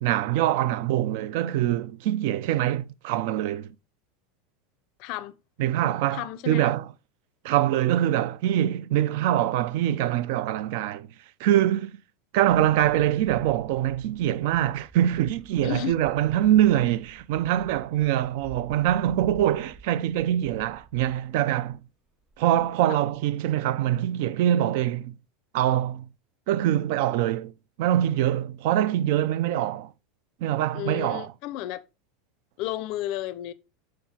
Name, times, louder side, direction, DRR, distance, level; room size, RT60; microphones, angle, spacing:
voice 1, 0.0-3.7 5.6-6.9 7.4-11.1 11.4-12.0 12.3-21.8 22.4-25.1 25.5-26.1 26.5-27.5 27.8-29.9 30.4-31.3, right 12 dB, 65° right, 0.4 m, -24 dB
voice 2, 5.0-5.3 6.1-6.7 15.6-16.0 22.9-23.0 30.7-31.8 32.6-33.5, left 13 dB, 60° left, 0.4 m, -32 dB
sound 1, 12.5-21.9 22.2-23.5, right 4 dB, 25° right, 2.9 m, -50 dB
7.4 x 6.3 x 2.8 m
hypercardioid pair, 95°, 0 cm